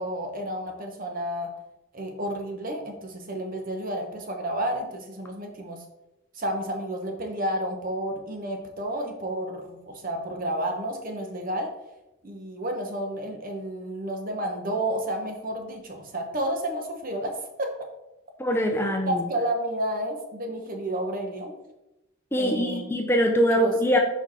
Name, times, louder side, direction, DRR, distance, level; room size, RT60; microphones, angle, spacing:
voice 1, 0.0-1.5 1.9-5.8 6.3-11.7 12.2-17.7 18.8-21.5 22.4-22.9 23.5-23.7, right 1 dB, 40° right, 3 dB, 1.0 m, -31 dB
voice 2, 18.4-19.2 22.3-24.0, equal, 10° left, 2 dB, 0.6 m, -23 dB
4.6 x 4.5 x 5.6 m, 0.92 s
head